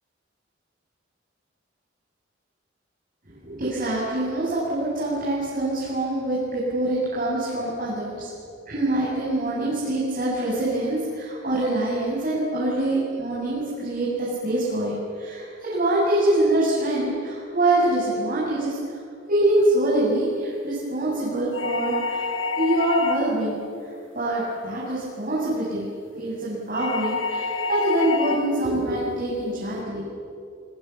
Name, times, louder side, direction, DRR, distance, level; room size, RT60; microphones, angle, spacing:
voice 1, 3.3-8.3 8.7-19.0 19.3-22.2 22.6-23.6 24.1-25.9 26.2-30.1, right 1 dB, 45° right, -7 dB, 7.4 m, -24 dB
sound 1, 21.5-23.5 26.7-28.5, left 4 dB, 80° left, 2.4 m, -28 dB
27.5 x 25.0 x 7.2 m, 2.4 s
head